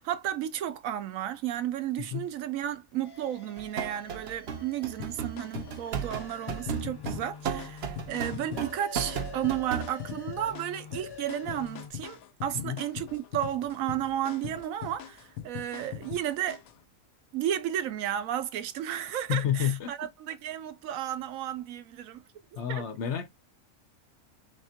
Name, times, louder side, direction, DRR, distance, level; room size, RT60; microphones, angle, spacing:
voice 1, 0.0-16.6 17.3-22.2 22.5-22.8, right 11 dB, 80° right, 1.0 m, -33 dB
sound 1, 3.0-11.9, left 5 dB, 25° left, 0.6 m, -47 dB
sound 2, 3.6-9.9, right 7 dB, 55° right, 0.8 m, -35 dB
sound 3, 5.0-16.8, left 10 dB, 90° left, 1.0 m, -42 dB
voice 2, 19.3-19.9 22.5-23.3, left 9 dB, 65° left, 0.9 m, -30 dB
3.5 x 3.4 x 2.8 m
omnidirectional pair, 1.4 m